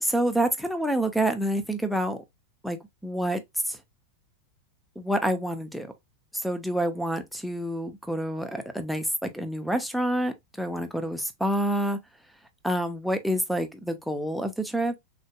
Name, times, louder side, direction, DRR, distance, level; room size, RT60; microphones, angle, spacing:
voice 1, 0.0-2.2 2.6-3.8 5.0-5.9 6.4-12.0 12.6-14.9, right 1 dB, ahead, 0.7 m, -28 dB
6.1 x 2.5 x 2.3 m
figure-of-eight pair, 90°, 0 cm